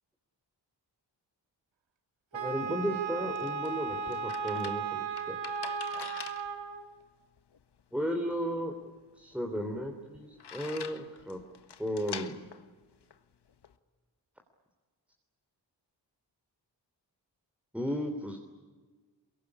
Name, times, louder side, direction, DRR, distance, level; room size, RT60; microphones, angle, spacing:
voice 1, 2.3-5.4 5.9-6.0 7.9-8.7 9.2-11.4 11.8-12.4 17.7-18.4, equal, 5° right, 3 dB, 3.3 m, -34 dB
Wind instrument woodwind instrument, 2.3-6.9, right 6 dB, 85° right, 2.1 m, -35 dB
sound 1, 2.9-13.8, left 7 dB, 65° left, 1.5 m, -47 dB
23.0 x 23.0 x 9.9 m, 1.4 s
cardioid pair, 75°, 44 cm